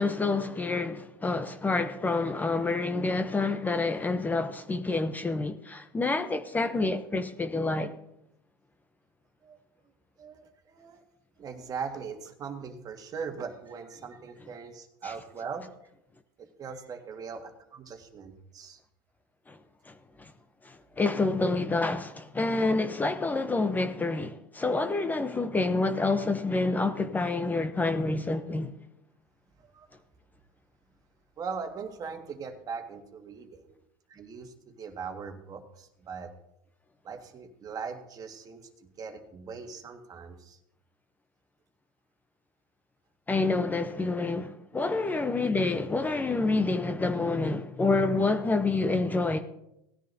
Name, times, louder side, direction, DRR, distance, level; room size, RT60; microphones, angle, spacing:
voice 1, 0.0-7.9 15.0-15.1 19.5-19.6 19.9-20.3 20.6-28.7 43.3-49.4, left 3 dB, 15° left, 0.7 m, -28 dB
voice 2, 10.2-11.0 11.4-15.7 16.4-18.8 29.6-29.9 31.4-33.7 34.1-36.3 37.0-38.7 39.0-40.6, right 5 dB, 35° right, 1.7 m, -40 dB
18.0 x 10.0 x 2.7 m
supercardioid pair, 105°, 11 cm